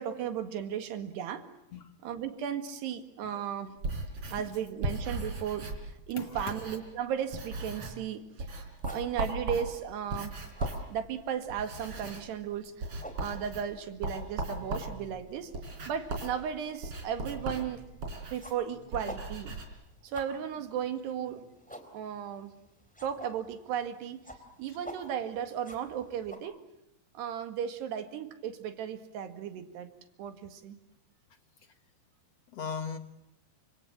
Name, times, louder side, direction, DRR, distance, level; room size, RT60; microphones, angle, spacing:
voice 1, 0.0-1.4 2.0-3.8 4.3-5.7 6.1-8.5 8.9-10.4 10.9-12.9 13.2-15.5 15.9-19.6 20.0-21.5 21.9-22.5 23.0-24.2 24.6-26.6 27.2-29.9 30.2-30.8, right 8 dB, 75° right, 7 dB, 4.0 m, -35 dB
sound 1, 3.8-7.0 7.3-8.1 8.4-19.6, right 2 dB, 35° right, 4.5 m, -38 dB
voice 2, 6.2-6.6 10.2-10.3 32.5-33.0, left 6 dB, 65° left, 8 dB, 1.5 m, -38 dB
sound 2, 7.1-26.4, equal, ahead, 3.2 m, -52 dB
29.5 x 26.0 x 7.3 m, 0.83 s
omnidirectional pair, 4.9 m